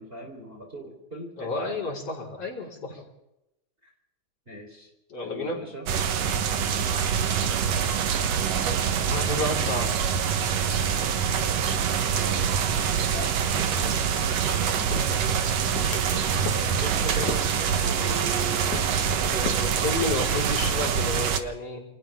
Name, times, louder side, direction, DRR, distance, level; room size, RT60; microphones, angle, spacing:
voice 1, 0.0-2.0 2.9-3.0 4.5-4.9 5.2-5.9 6.6-7.8 9.4-9.9 10.6-10.9 11.2-12.5 13.1-15.2 16.8-18.5, equal, 15° right, 0 dB, 4.2 m, -41 dB
voice 2, 1.4-3.0 5.1-5.6 9.1-10.2 19.2-21.8, left 2 dB, 50° left, -3 dB, 5.8 m, -31 dB
sound 1, 5.9-21.4, right 7 dB, 60° right, 2.3 m, -25 dB
sound 2, 14.6-21.2, left 7 dB, 80° left, 3.2 m, -40 dB
28.5 x 27.5 x 3.7 m, 0.87 s
omnidirectional pair, 3.5 m